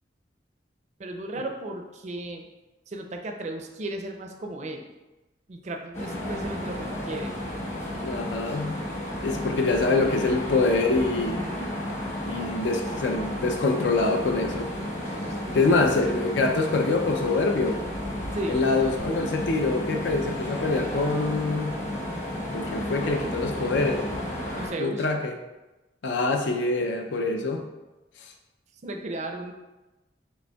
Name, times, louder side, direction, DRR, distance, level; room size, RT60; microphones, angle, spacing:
voice 1, 1.0-2.5 2.9-4.9 5.5-7.4 11.1-11.8 15.1-15.8 18.3-18.7 24.6-25.1 28.8-29.5, right 2 dB, 40° right, 4 dB, 0.4 m, -35 dB
sound 1, 5.9-24.7, left 1 dB, 40° left, 1.0 m, -32 dB
voice 2, 8.0-8.8 9.2-11.4 12.2-14.7 15.5-17.8 18.5-21.8 22.5-24.0 24.8-25.3 26.0-27.6, left 3 dB, 80° left, 3 dB, 0.4 m, -25 dB
5.1 x 3.5 x 2.2 m, 1.1 s
head